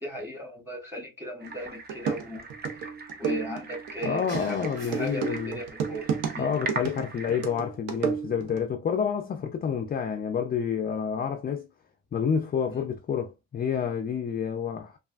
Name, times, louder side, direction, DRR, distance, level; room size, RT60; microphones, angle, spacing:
voice 1, 0.0-2.5 3.2-4.6 4.9-6.1 6.3-6.5, equal, 10° right, 1.6 m, -37 dB
sound 1, 1.4-7.5, right 3 dB, 30° right, 0.6 m, -40 dB
sound 2, 1.5-1.6 1.9-8.6, right 7 dB, 85° right, 0.7 m, -32 dB
voice 2, 4.0-5.6 6.4-11.7 12.1-15.0, left 7 dB, 30° left, 0.4 m, -29 dB
sound 3, 4.3-6.0, right 3 dB, 65° right, 1.9 m, -47 dB
3.2 x 2.3 x 2.3 m
cardioid pair, 90°, 30 cm